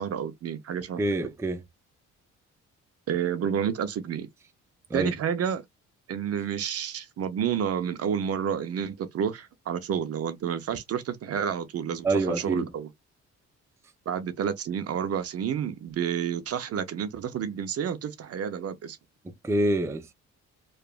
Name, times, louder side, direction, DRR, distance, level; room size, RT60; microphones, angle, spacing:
voice 1, 0.0-1.0 3.1-4.3 4.9-5.6 6.1-12.9 14.1-19.0, right 8 dB, 50° right, 0.6 m, -30 dB
voice 2, 1.0-1.6 4.9-5.1 12.0-12.7 19.4-20.1, right 2 dB, 10° right, 0.4 m, -26 dB
2.8 x 2.4 x 2.3 m
cardioid pair, 90°, 30 cm